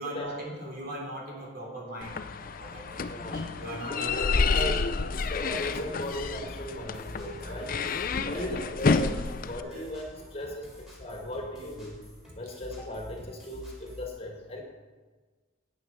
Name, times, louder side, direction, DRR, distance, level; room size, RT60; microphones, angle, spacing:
voice 1, 0.0-2.3 2.6-4.9 7.3-7.7 8.2-8.7 9.6-9.8 10.4-10.5, right 1 dB, 50° right, -2 dB, 3.2 m, -40 dB
sound 1, 2.0-9.6, left 4 dB, 45° left, 0.5 m, -29 dB
voice 2, 3.1-3.4 4.1-4.8 5.3-7.7 8.2-10.7 11.0-12.0 12.4-14.6, left 1 dB, 30° left, 1 dB, 1.9 m, -37 dB
sound 2, 3.2-11.7, right 1 dB, 90° right, 2.2 m, -52 dB
sound 3, 5.1-14.1, equal, ahead, 3.7 m, -47 dB
9.4 x 8.5 x 6.7 m, 1.3 s
head